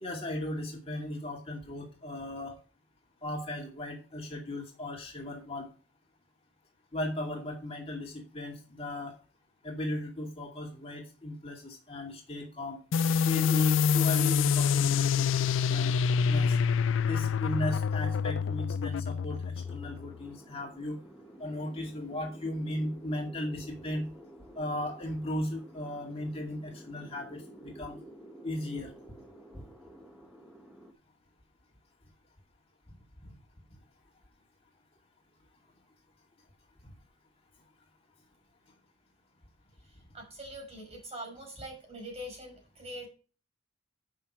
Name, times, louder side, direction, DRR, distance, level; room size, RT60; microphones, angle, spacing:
voice 1, 0.0-2.6 3.2-5.7 6.9-9.2 9.6-12.8 13.3-15.9 16.3-16.6 17.0-21.0 21.4-24.0 24.6-28.0 28.4-28.9 36.8-36.9, left 1 dB, 30° left, 0 dB, 2.4 m, -36 dB
sound 1, 12.9-20.2, left 6 dB, 75° left, 0.4 m, -26 dB
sound 2, 19.6-30.9, right 1 dB, ahead, 1.3 m, -51 dB
voice 2, 40.1-43.1, equal, 35° right, 1 dB, 5.5 m, -43 dB
11.5 x 6.7 x 4.3 m, 0.35 s
head